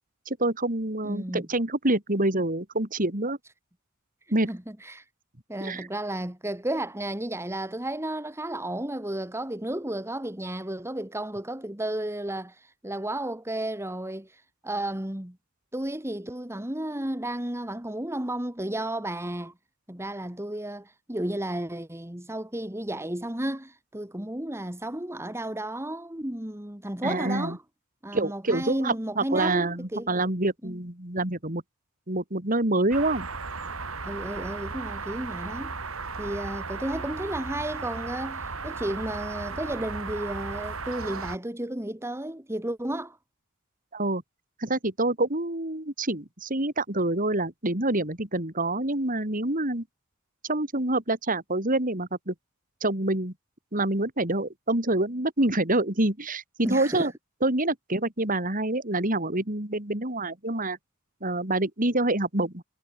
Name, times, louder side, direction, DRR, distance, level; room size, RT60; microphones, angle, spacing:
voice 1, 0.3-3.4 4.3-4.5 5.6-5.9 27.0-27.6 28.1-31.6 32.1-33.3 43.9-44.2 44.6-49.8 50.5-52.3 52.8-53.3 53.7-57.1 57.4-60.8 61.2-62.6, right 2 dB, 40° right, 4.1 m, -26 dB
voice 2, 1.0-1.4 4.5-5.0 5.5-15.4 15.7-19.5 19.9-27.6 28.0-30.1 30.6-30.8 34.0-35.8 36.2-43.2 56.6-57.1, right 1 dB, 10° right, 1.9 m, -33 dB
sound 1, 32.9-41.4, right 4 dB, 70° right, 3.6 m, -35 dB
head